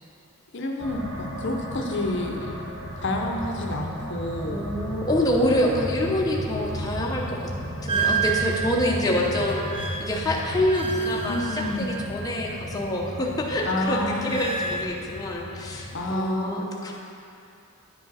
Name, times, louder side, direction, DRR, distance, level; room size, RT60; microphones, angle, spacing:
voice 1, 0.5-2.5 3.0-4.6 11.3-11.9 13.6-14.4 15.9-16.7, left 1 dB, 55° left, 2 dB, 0.7 m, -29 dB
sound 1, 0.8-16.1, equal, 60° right, 1.0 m, -35 dB
voice 2, 4.5-7.5 7.8-16.9, left 1 dB, 15° left, -3 dB, 0.6 m, -26 dB
sound 2, 7.9-12.6 12.9-14.9, right 6 dB, 25° right, 0.4 m, -31 dB
9.6 x 5.2 x 4.0 m, 2.6 s
head